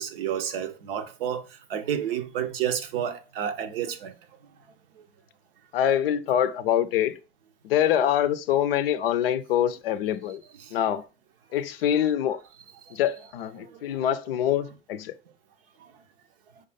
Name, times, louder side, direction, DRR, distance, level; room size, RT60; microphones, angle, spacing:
voice 1, 0.0-1.4 1.7-4.1, right 9 dB, 70° right, 0.6 m, -30 dB
voice 2, 5.7-7.1 7.6-10.4 10.7-11.0 11.5-12.4 12.9-15.1, left 10 dB, 75° left, 0.5 m, -25 dB
5.3 x 2.5 x 4.0 m
figure-of-eight pair, 60°, 30 cm